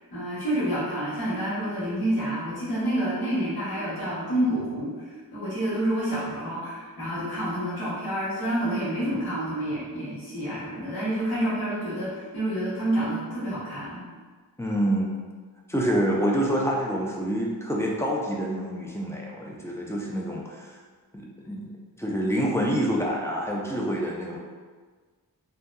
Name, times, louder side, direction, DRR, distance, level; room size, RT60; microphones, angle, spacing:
voice 1, 0.1-14.1, right 1 dB, 90° left, -9 dB, 1.0 m, -28 dB
voice 2, 14.6-15.2 15.7-20.8 21.1-21.7 22.0-24.4, equal, 10° left, -3 dB, 0.3 m, -27 dB
2.6 x 2.2 x 2.2 m, 1.5 s
wide cardioid pair, 70°, 36 cm